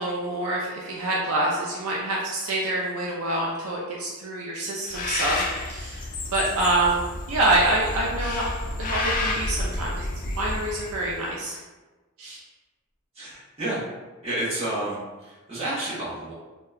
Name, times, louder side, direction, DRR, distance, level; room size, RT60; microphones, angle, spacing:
voice 1, 0.0-7.0 7.3-10.1 10.4-11.6 12.2-12.4, right 2 dB, 70° right, -3 dB, 0.4 m, -26 dB
Bird, 4.9-11.3, left 2 dB, 40° left, 0.3 m, -30 dB
voice 2, 13.1-13.8 14.2-16.3, right 1 dB, 30° right, -10 dB, 1.1 m, -30 dB
2.7 x 2.2 x 2.3 m, 1.2 s
head